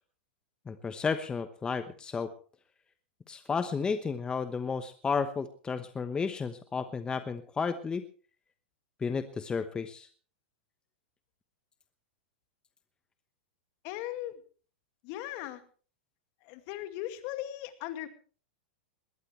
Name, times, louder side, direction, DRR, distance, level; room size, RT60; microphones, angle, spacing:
voice 1, 0.7-2.3 3.3-8.0 9.0-10.1, left 5 dB, 15° left, 10 dB, 1.0 m, -32 dB
voice 2, 13.8-14.4 15.0-15.6 16.4-18.1, left 14 dB, 50° left, 9 dB, 2.2 m, -38 dB
20.5 x 18.0 x 3.3 m, 0.40 s
hypercardioid pair, 120°, 5 cm